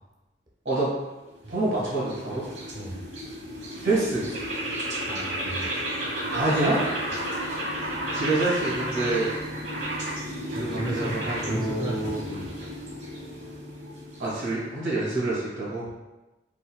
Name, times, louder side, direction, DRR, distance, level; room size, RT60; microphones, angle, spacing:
sound 1, 1.3-14.7, equal, 65° right, 1.1 m, -33 dB
voice 1, 1.5-2.4 3.8-4.3 6.3-6.8 7.7-7.8 8.1-9.3 10.5-12.2 14.2-15.9, right 2 dB, 85° right, -7 dB, 1.3 m, -27 dB
voice 2, 2.7-3.0 5.0-5.8 10.5-12.5 15.9-16.0, right 1 dB, 25° right, -2 dB, 0.4 m, -34 dB
3.8 x 2.2 x 2.2 m, 1.1 s
head